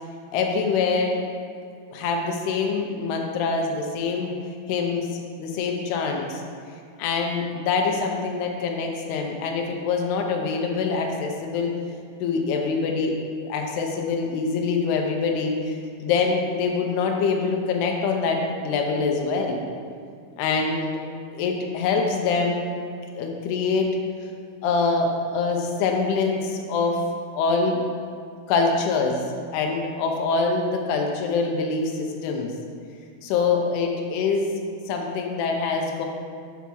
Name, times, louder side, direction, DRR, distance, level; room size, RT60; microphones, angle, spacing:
voice 1, 0.3-1.2 1.9-4.4 4.7-5.1 5.4-6.4 7.0-11.7 12.2-19.6 20.4-20.9 21.3-22.7 23.1-23.9 24.6-27.1 27.3-27.8 28.5-29.2 29.5-32.5 33.2-34.5 34.9-36.0, left 4 dB, 85° left, 1 dB, 2.3 m, -24 dB
6.9 x 5.8 x 6.2 m, 2.3 s
omnidirectional pair, 5.7 m